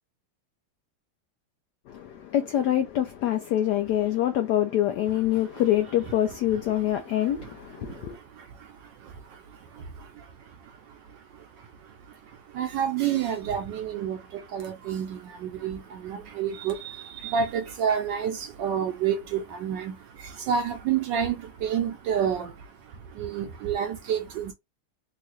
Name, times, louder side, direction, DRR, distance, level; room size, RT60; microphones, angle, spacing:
voice 1, 1.9-8.2, left 12 dB, 90° left, 0.9 m, -25 dB
voice 2, 7.2-7.5 7.8-24.5, right 8 dB, 75° right, 1.0 m, -30 dB
3.7 x 2.4 x 3.0 m
omnidirectional pair, 2.3 m